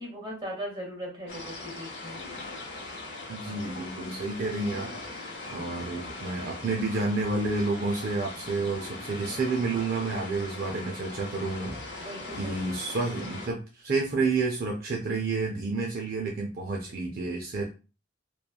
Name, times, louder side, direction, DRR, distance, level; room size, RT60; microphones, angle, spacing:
voice 1, 0.0-2.2 12.0-12.8, equal, 25° right, -2 dB, 1.1 m, -39 dB
sound 1, 1.3-13.5, left 2 dB, 70° left, 0.9 m, -40 dB
voice 2, 3.3-4.9 5.5-12.1 12.4-17.7, right 3 dB, 55° right, 0 dB, 0.4 m, -30 dB
3.1 x 2.2 x 2.3 m, 0.32 s
head